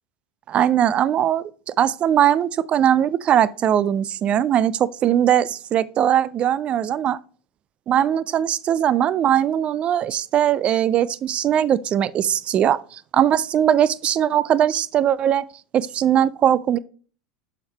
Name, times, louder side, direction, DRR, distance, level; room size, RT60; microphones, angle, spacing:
voice 1, 0.5-7.2 7.9-15.4 15.7-16.8, right 10 dB, 35° right, 0.3 m, -20 dB
7.0 x 5.0 x 3.3 m
figure-of-eight pair, 80°, 3 cm